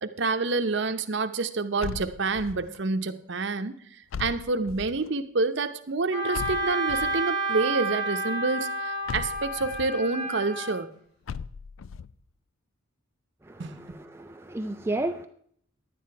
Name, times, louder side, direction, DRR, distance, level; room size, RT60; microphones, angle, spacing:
voice 1, 0.0-3.8 4.2-10.9 13.6-14.0, right 3 dB, 60° right, 9 dB, 0.8 m, -28 dB
sound 1, 1.8-2.8 4.1-5.1 6.3-7.3 9.1-9.9 11.3-12.1, left 6 dB, 80° left, 0.4 m, -38 dB
Wind instrument woodwind instrument, 6.1-10.8, right 2 dB, 55° left, 5.2 m, -30 dB
voice 2, 13.4-15.3, right 2 dB, 10° right, 7 dB, 0.4 m, -32 dB
10.5 x 9.6 x 4.6 m, 0.62 s
head